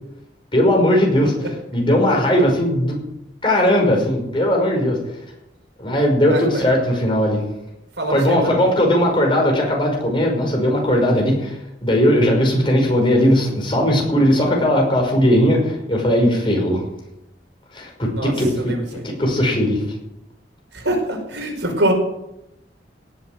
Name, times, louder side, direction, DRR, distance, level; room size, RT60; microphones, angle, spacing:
voice 1, 0.5-1.3 1.7-3.0 3.4-5.0 5.8-7.4 8.1-16.8 17.7-18.7 19.0-19.9, equal, 30° left, 0 dB, 5.4 m, -18 dB
voice 2, 6.3-6.6 8.0-8.5 18.1-19.1 20.7-21.9, right 1 dB, 85° right, 2 dB, 5.3 m, -24 dB
18.0 x 8.2 x 8.0 m, 0.85 s
head